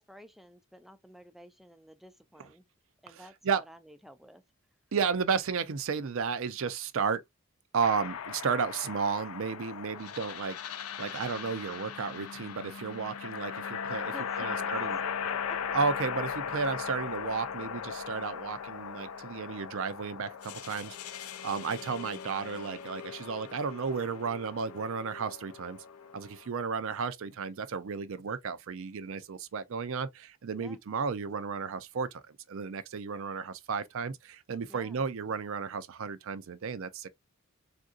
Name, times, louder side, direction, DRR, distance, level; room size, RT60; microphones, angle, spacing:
voice 1, 0.0-2.7 3.0-3.3 3.7-4.4 14.1-15.6 30.5-30.8 34.7-35.1, equal, ahead, 0.4 m, -52 dB
voice 2, 3.1-3.6 4.9-7.2 7.7-15.0 15.7-25.8 26.1-37.1, right 5 dB, 65° right, 0.5 m, -33 dB
sound 1, 7.8-26.5, left 7 dB, 80° left, 0.4 m, -38 dB
3.6 x 2.6 x 2.4 m
head